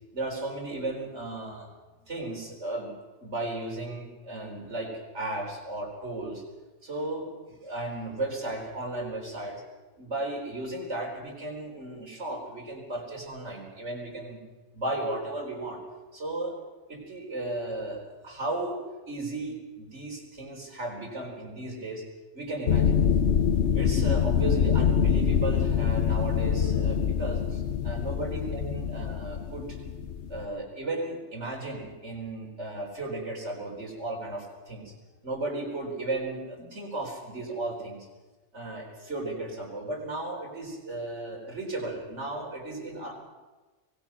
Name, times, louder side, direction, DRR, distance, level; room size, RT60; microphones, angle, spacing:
voice 1, 0.1-1.7 2.0-2.9 3.2-6.4 6.8-9.6 10.0-14.4 14.7-15.8 16.1-16.6 16.9-22.0 22.3-23.0 23.7-27.3 27.8-29.8 30.3-34.9 35.2-38.0 38.5-43.1, right 2 dB, 75° right, -1 dB, 4.6 m, -35 dB
sound 1, 22.7-30.5, left 7 dB, 70° left, 1.3 m, -25 dB
24.0 x 18.0 x 6.1 m, 1.2 s
omnidirectional pair, 1.2 m